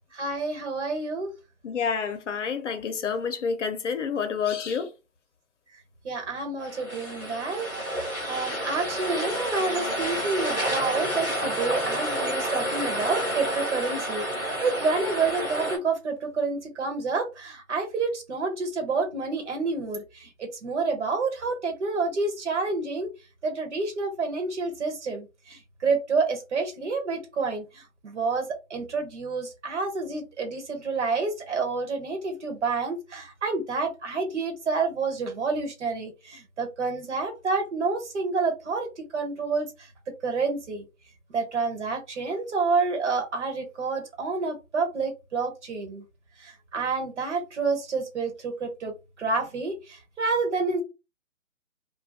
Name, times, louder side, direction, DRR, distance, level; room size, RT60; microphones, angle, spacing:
voice 1, 0.1-1.3 6.0-23.1 23.4-39.7 40.2-40.8 41.3-46.0 46.4-50.8, right 4 dB, 55° right, 1.1 m, -29 dB
voice 2, 1.6-4.9, left 6 dB, 60° left, 0.7 m, -28 dB
sound 1, 6.6-15.8, equal, 5° left, 0.5 m, -30 dB
2.5 x 2.2 x 3.5 m
figure-of-eight pair, 145°, 41 cm